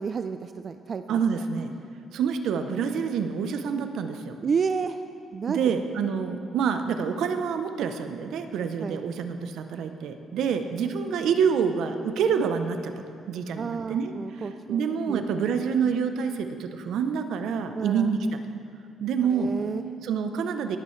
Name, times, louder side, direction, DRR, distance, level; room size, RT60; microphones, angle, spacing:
voice 1, 0.0-1.4 4.4-5.0 5.3-5.6 8.8-9.0 13.6-15.3 17.8-18.1 19.3-19.8, right 5 dB, 45° right, 9 dB, 0.3 m, -31 dB
voice 2, 1.1-1.7 2.1-4.4 5.5-12.9 13.3-14.1 14.4-18.3 19.0-19.5 20.0-20.8, right 6 dB, 80° right, 8 dB, 0.7 m, -27 dB
18.0 x 8.6 x 3.2 m, 2.4 s
cardioid pair, 90°, 0 cm